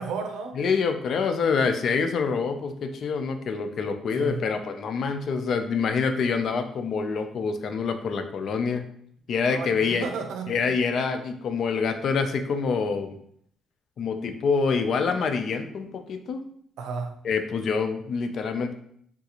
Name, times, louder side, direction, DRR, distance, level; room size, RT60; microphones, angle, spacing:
voice 1, 0.0-0.6 4.2-4.4 9.5-10.8 16.8-17.1, right 5 dB, 85° right, 4 dB, 0.5 m, -33 dB
voice 2, 0.6-8.8 9.3-10.0 10.5-13.1 14.0-16.4 17.2-18.7, left 5 dB, 60° left, 7 dB, 0.4 m, -26 dB
3.5 x 2.4 x 2.9 m, 0.66 s
cardioid pair, 90°, 0 cm